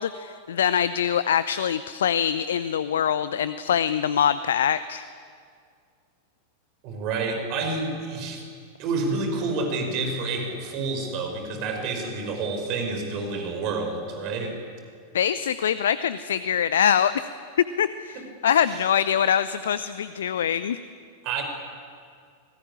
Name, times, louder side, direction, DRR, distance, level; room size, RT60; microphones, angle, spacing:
voice 1, 0.0-5.0 15.1-17.3 17.8-20.8, left 8 dB, 65° left, 15 dB, 0.7 m, -24 dB
voice 2, 6.8-8.4 8.8-14.6 18.7-18.8 21.2-21.4, right 3 dB, 40° right, 4 dB, 5.6 m, -29 dB
26.5 x 19.5 x 10.0 m, 2.2 s
figure-of-eight pair, 90°, 0 cm